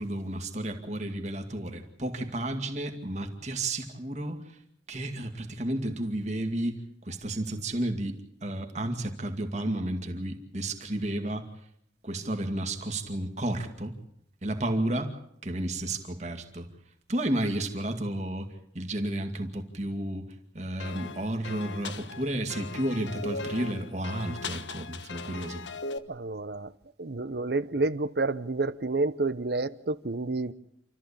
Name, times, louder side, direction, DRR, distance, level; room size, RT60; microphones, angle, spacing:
voice 1, 0.0-4.6 4.9-6.8 7.1-11.5 12.0-13.9 14.4-15.1 15.4-16.7 17.1-20.3 20.5-25.6, right 1 dB, 40° right, 5 dB, 2.3 m, -32 dB
sound 1, 20.8-26.0, left 3 dB, 85° left, 1.2 m, -38 dB
voice 2, 26.1-26.7 27.0-30.5, right 3 dB, 60° right, 16 dB, 0.9 m, -29 dB
28.5 x 14.0 x 8.6 m, 0.71 s
head